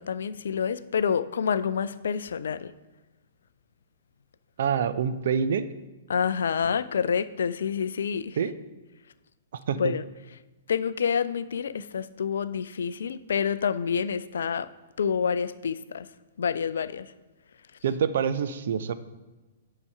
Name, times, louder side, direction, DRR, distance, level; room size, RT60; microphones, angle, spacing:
voice 1, 0.0-2.7 6.1-8.4 9.7-10.0 10.7-14.7 15.0-16.1 16.4-17.1, left 7 dB, 65° left, 0.4 m, -28 dB
voice 2, 4.6-5.7 8.4-8.5 9.7-9.9 17.8-18.9, right 7 dB, 55° right, 0.5 m, -26 dB
9.5 x 4.9 x 5.5 m
figure-of-eight pair, 115°, 0 cm